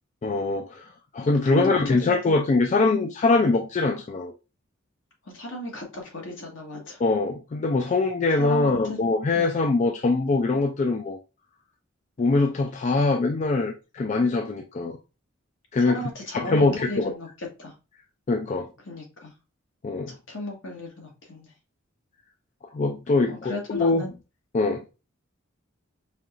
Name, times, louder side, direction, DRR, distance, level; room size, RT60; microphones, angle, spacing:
voice 1, 0.2-4.3 7.0-11.2 12.2-15.0 15.7-16.0 16.3-17.1 18.3-18.7 19.8-20.2 22.7-24.0 24.5-24.8, left 3 dB, 35° left, 0.3 m, -23 dB
voice 2, 1.2-2.4 5.3-7.0 8.3-9.0 9.3-9.7 15.9-17.7 18.8-19.3 20.1-21.5 23.3-24.1, left 1 dB, 70° left, 1.4 m, -35 dB
5.1 x 2.8 x 2.4 m
head